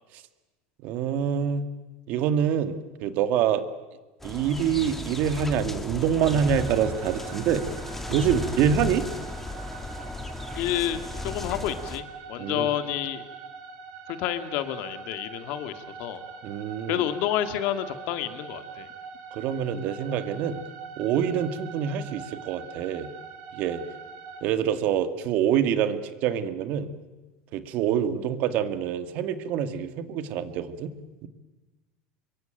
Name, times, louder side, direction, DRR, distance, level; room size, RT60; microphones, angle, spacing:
voice 1, 0.8-1.7 2.1-3.7 4.2-7.6 8.1-9.0 12.4-12.7 16.4-17.1 19.3-20.6 21.0-23.1 23.5-23.8 24.4-26.9 27.5-30.9 31.2-31.3, right 8 dB, 55° right, 10 dB, 2.1 m, -26 dB
sound 1, 4.2-12.0, left 2 dB, 5° left, 2.4 m, -35 dB
sound 2, 6.2-24.4, right 6 dB, 75° right, 6.1 m, -43 dB
voice 2, 10.6-13.2 14.1-16.2 16.9-18.9, left 11 dB, 60° left, 10 dB, 2.2 m, -29 dB
26.5 x 23.0 x 9.1 m, 1.2 s
supercardioid pair, 130°, 3 cm